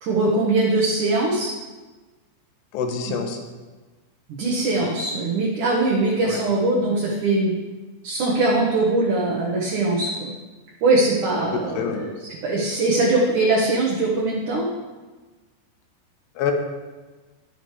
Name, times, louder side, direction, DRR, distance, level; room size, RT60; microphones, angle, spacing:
voice 1, 0.0-1.5 4.3-7.5 8.0-10.3 10.8-12.1 12.4-14.6, right 2 dB, 60° right, -4 dB, 2.3 m, -21 dB
voice 2, 2.7-3.4 6.2-6.4 11.5-12.0 16.4-16.5, left 7 dB, 85° left, 4 dB, 3.1 m, -26 dB
11.0 x 9.9 x 3.3 m, 1.3 s
omnidirectional pair, 4.7 m